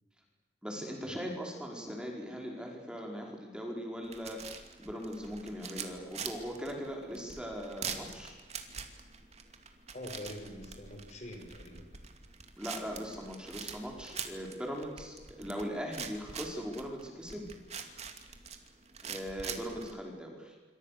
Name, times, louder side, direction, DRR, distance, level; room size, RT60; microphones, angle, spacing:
voice 1, 0.6-4.4 4.8-8.3 12.6-17.5 19.0-20.5, equal, 5° right, 0 dB, 4.9 m, -40 dB
sound 1, 4.0-20.0, right 6 dB, 40° right, 2.7 m, -45 dB
voice 2, 9.9-11.8, left 1 dB, 40° left, 4 dB, 5.4 m, -44 dB
27.0 x 25.5 x 6.8 m, 1.3 s
head